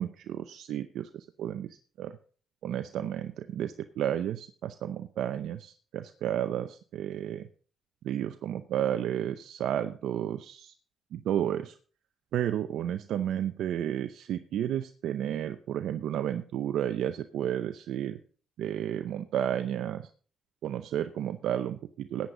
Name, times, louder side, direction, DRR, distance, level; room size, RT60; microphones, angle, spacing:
voice 1, 0.0-2.2 2.6-7.5 8.0-10.7 11.1-11.8 12.3-18.2 18.6-20.1 20.6-22.3, right 10 dB, 75° right, 9 dB, 0.6 m, -32 dB
14.5 x 9.5 x 3.8 m, 0.42 s
cardioid pair, 90°, 0 cm